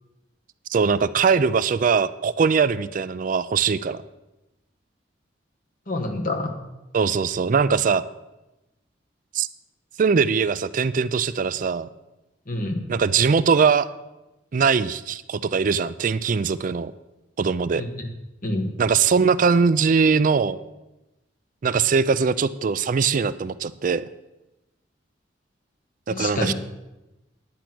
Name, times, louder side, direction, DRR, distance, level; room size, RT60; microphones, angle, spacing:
voice 1, 0.7-4.0 6.9-8.0 9.3-9.5 10.0-11.9 12.9-13.9 14.5-16.9 17.4-17.8 18.8-20.6 21.6-24.0 26.1-26.5, right 5 dB, 45° right, 15 dB, 0.4 m, -21 dB
voice 2, 5.9-6.5 12.5-12.8 17.7-18.1 18.4-18.7 26.1-26.5, left 2 dB, 50° left, 4 dB, 1.5 m, -27 dB
10.0 x 9.1 x 6.0 m, 0.98 s
head